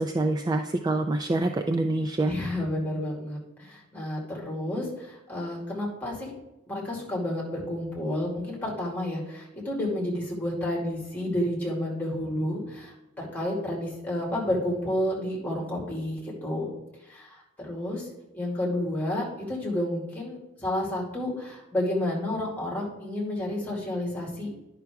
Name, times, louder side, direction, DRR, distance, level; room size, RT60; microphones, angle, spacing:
voice 1, 0.0-2.3, right 2 dB, 20° right, 6 dB, 0.3 m, -26 dB
voice 2, 2.2-6.3 6.7-16.7 17.1-18.1 18.3-24.5, left 1 dB, 10° left, -3 dB, 2.3 m, -30 dB
10.5 x 5.8 x 3.6 m, 0.93 s
head